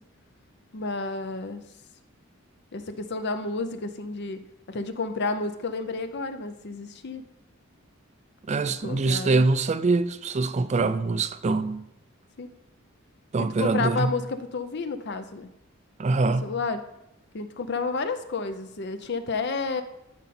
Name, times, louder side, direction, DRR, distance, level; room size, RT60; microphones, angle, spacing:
voice 1, 0.7-1.6 2.7-4.4 4.7-7.2 8.8-9.5 12.4-12.5 13.4-15.5 16.3-16.8 17.3-19.8, left 3 dB, 55° left, 0.6 m, -31 dB
voice 2, 8.5-11.8 13.3-14.1 16.0-16.5, right 3 dB, 35° right, 0.4 m, -24 dB
13.0 x 5.3 x 4.3 m
head